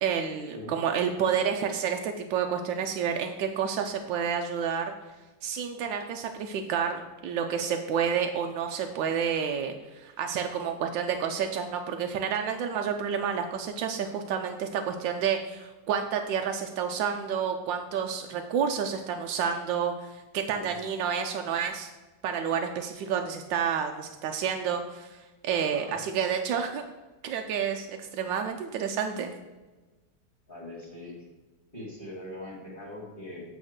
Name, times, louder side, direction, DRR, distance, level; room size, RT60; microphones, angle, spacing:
voice 1, 0.0-4.9 5.4-21.9 22.2-25.2 25.4-26.8 27.2-29.3, right 7 dB, 85° right, 4 dB, 1.3 m, -29 dB
voice 2, 30.5-31.1 31.7-33.4, left 1 dB, 30° left, -4 dB, 2.0 m, -41 dB
8.5 x 3.6 x 6.3 m, 1.2 s
omnidirectional pair, 2.0 m